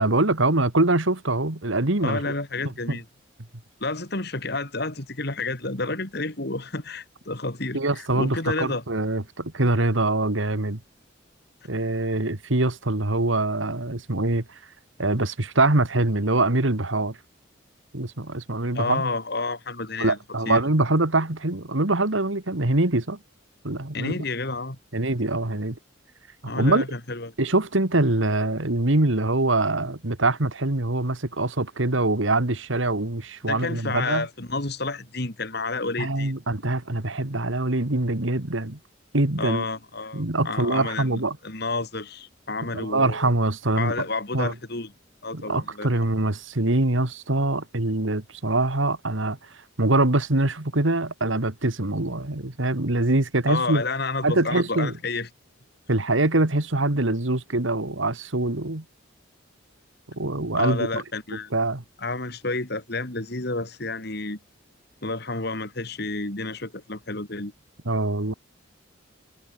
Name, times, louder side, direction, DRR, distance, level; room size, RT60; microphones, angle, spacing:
voice 1, 0.0-2.2 2.9-3.0 7.7-10.8 11.7-14.4 15.0-17.2 17.9-19.0 20.0-23.2 23.6-24.2 24.9-25.8 26.6-26.9 27.4-34.3 36.0-38.8 39.1-39.6 40.1-41.4 42.7-43.9 44.3-44.5 45.3-49.4 49.8-53.8 54.2-54.9 55.9-58.8 60.1-61.0 61.5-61.8 67.9-68.3, right 2 dB, 75° right, 2.1 m, -24 dB
voice 2, 2.0-3.0 3.8-8.8 18.7-20.2 20.5-20.6 23.9-24.8 26.5-27.3 33.5-36.3 39.4-43.3 43.8-44.9 45.2-45.9 53.5-55.3 60.6-61.5 62.0-64.4 65.0-67.5, left 3 dB, 55° left, 3.0 m, -30 dB
head